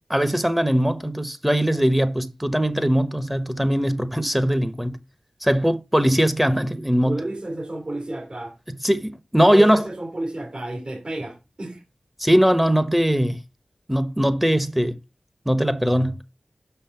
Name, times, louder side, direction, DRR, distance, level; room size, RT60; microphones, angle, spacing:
voice 1, 0.1-5.0 5.4-7.2 8.8-9.8 12.2-13.4 13.9-15.0 15.5-16.2, equal, 5° right, 1.0 m, -20 dB
voice 2, 7.0-8.6 9.4-11.8, right 1 dB, 50° right, 2.7 m, -31 dB
6.4 x 5.6 x 5.7 m
cardioid pair, 50°, 2 cm